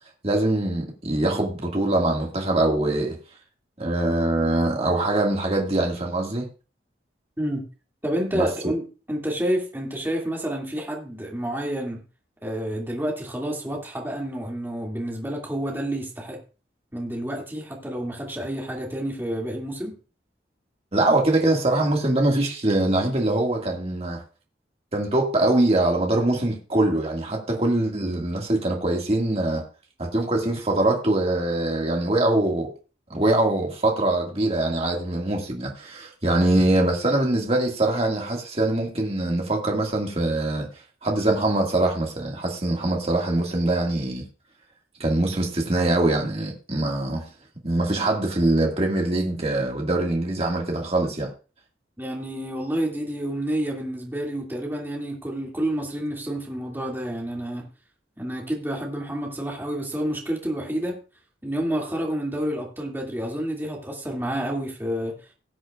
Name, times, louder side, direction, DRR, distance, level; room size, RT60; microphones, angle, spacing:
voice 1, 0.2-3.2 3.8-6.5 8.3-8.7 20.9-24.2 24.9-29.6 30.0-32.7 33.1-40.7 41.0-44.2 45.0-47.2 47.6-51.3, right 2 dB, 35° right, 2.0 m, -23 dB
voice 2, 8.0-12.0 12.4-16.4 16.9-19.9 52.0-57.6 58.2-61.0 61.4-65.1, right 1 dB, 10° right, 2.4 m, -29 dB
19.0 x 7.9 x 2.4 m
head